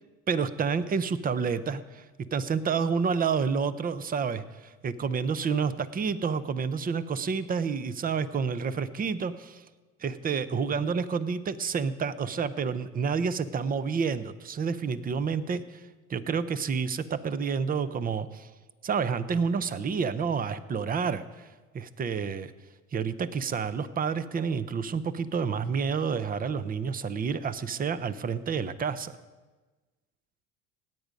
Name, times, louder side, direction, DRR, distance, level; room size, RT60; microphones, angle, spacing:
voice 1, 0.3-2.1 2.3-9.6 10.0-18.5 18.8-21.5 21.7-22.5 22.9-29.2, right 6 dB, 25° right, 15 dB, 0.7 m, -29 dB
17.0 x 9.1 x 5.2 m, 1.3 s
supercardioid pair, 100°, 36 cm